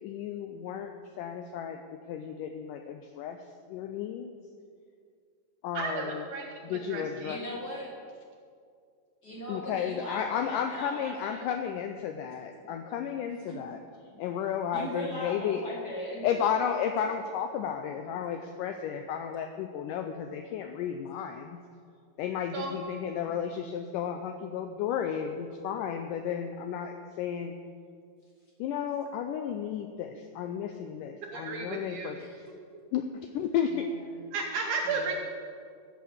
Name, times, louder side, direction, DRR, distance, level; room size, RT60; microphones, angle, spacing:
voice 1, 0.0-1.8 2.1-3.4 3.7-4.3 5.6-6.3 6.6-7.4 9.5-13.8 14.2-15.6 16.2-21.6 22.2-27.6 28.6-32.2 32.9-33.9, left 8 dB, 85° left, 6 dB, 1.9 m, -33 dB
voice 2, 5.7-7.4 22.5-22.7 31.3-32.2 34.3-35.1, right 4 dB, 70° right, 1 dB, 2.0 m, -34 dB
voice 3, 7.2-7.9 9.2-11.5 12.6-12.8 13.4-13.6 14.1-14.2 14.7-16.4 22.9-23.4 32.2-32.4 33.7-33.8 34.8-35.1, left 1 dB, 40° left, -4 dB, 1.6 m, -39 dB
14.5 x 5.1 x 6.5 m, 2.2 s
omnidirectional pair, 4.3 m